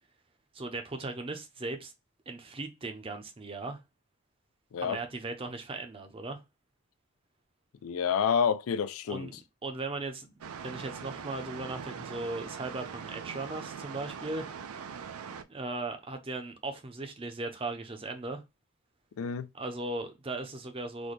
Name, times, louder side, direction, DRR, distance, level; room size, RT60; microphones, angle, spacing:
voice 1, 0.5-1.9 2.3-3.8 4.8-6.4 9.1-10.3 10.6-14.4 15.5-18.4 19.5-21.1, right 2 dB, 25° right, 0.5 m, -37 dB
voice 2, 7.8-9.3 19.2-19.5, left 7 dB, 75° left, 0.4 m, -28 dB
sound 1, 10.4-15.4, right 6 dB, 90° right, 0.4 m, -42 dB
4.0 x 2.2 x 3.1 m
head